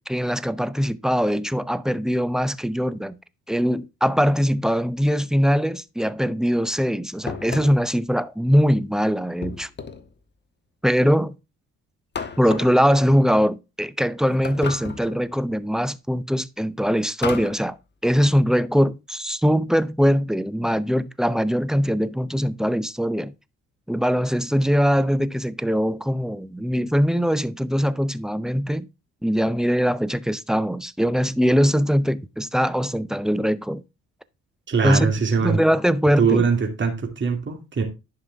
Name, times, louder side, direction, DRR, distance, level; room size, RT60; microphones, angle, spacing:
voice 1, 0.0-3.2 3.5-9.7 10.8-11.3 12.4-17.8 18.0-23.3 23.9-28.9 29.2-33.8 34.8-35.1 35.4-36.5, equal, ahead, 0.6 m, -21 dB
sound 1, 7.3-8.0 9.4-10.1 12.1-12.8 14.4-15.2 17.2-17.6, left 5 dB, 35° left, 1.3 m, -33 dB
voice 2, 34.7-35.6 36.2-37.8, right 5 dB, 40° right, 2.6 m, -22 dB
11.0 x 5.7 x 3.5 m
cardioid pair, 90°, 30 cm